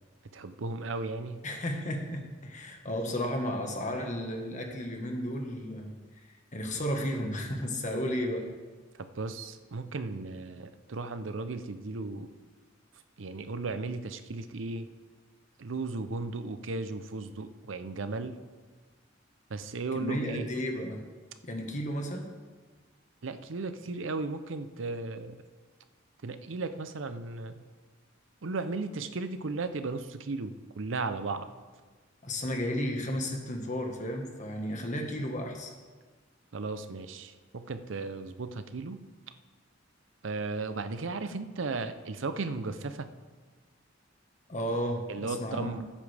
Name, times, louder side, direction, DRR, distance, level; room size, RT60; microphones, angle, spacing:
voice 1, 0.3-1.4 9.0-12.3 13.2-14.9 15.6-18.4 19.5-20.5 23.2-25.4 26.2-27.6 28.4-31.5 36.5-39.0 40.2-43.1 45.1-45.8, right 3 dB, 75° right, 10 dB, 0.6 m, -35 dB
voice 2, 1.4-5.9 6.5-8.4 19.9-21.0 21.4-22.3 32.2-35.7 44.5-45.8, equal, 40° left, 3 dB, 1.4 m, -33 dB
15.0 x 8.5 x 3.4 m, 1.4 s
head